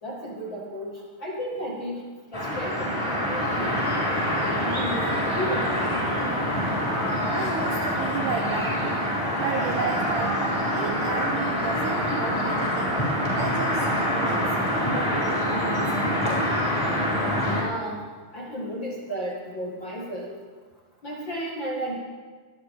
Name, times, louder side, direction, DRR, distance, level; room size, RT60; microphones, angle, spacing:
voice 1, 0.0-2.1 2.3-3.8 4.4-6.0 15.8-15.9 17.4-18.0 18.3-20.3 21.0-22.0, equal, 40° left, -3 dB, 1.8 m, -33 dB
sound 1, 2.3-17.6, equal, 5° left, 5.9 m, -25 dB
voice 2, 7.3-9.0 9.4-10.4 10.7-13.0 13.3-14.4 14.7-16.1, right 6 dB, 75° right, 3 dB, 1.9 m, -33 dB
24.0 x 13.5 x 3.7 m, 1.4 s
omnidirectional pair, 4.7 m